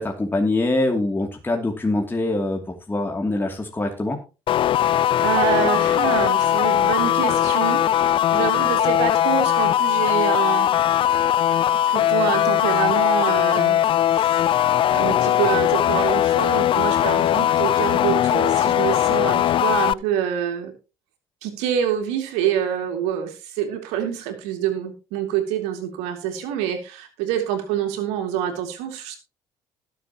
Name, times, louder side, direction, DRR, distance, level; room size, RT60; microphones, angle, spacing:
voice 1, 0.0-4.2, left 2 dB, 20° left, 1 dB, 2.7 m, -24 dB
sound 1, 4.5-19.9, left 11 dB, 50° left, 0.4 m, -19 dB
voice 2, 5.2-7.8 8.3-10.7 11.5-11.6 11.9-13.8 14.9-20.7 21.4-29.2, right 9 dB, 80° right, 5 dB, 2.6 m, -26 dB
20.0 x 7.2 x 3.0 m, 0.31 s
supercardioid pair, 70°, 11 cm